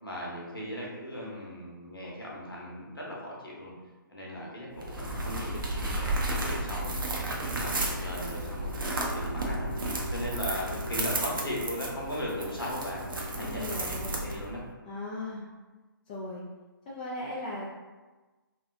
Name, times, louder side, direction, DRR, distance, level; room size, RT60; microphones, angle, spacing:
voice 1, 0.0-3.7 4.1-7.0 7.3-9.7 10.1-13.0 13.3-14.7, equal, 80° left, -4 dB, 0.9 m, -38 dB
sound 1, 4.8-14.6, right 1 dB, 70° right, 0.6 m, -33 dB
voice 2, 13.3-14.2 14.8-15.5 16.1-16.4 16.9-17.7, left 1 dB, 25° left, -5 dB, 0.4 m, -37 dB
2.8 x 2.2 x 2.5 m, 1.2 s
figure-of-eight pair, 135°, 12 cm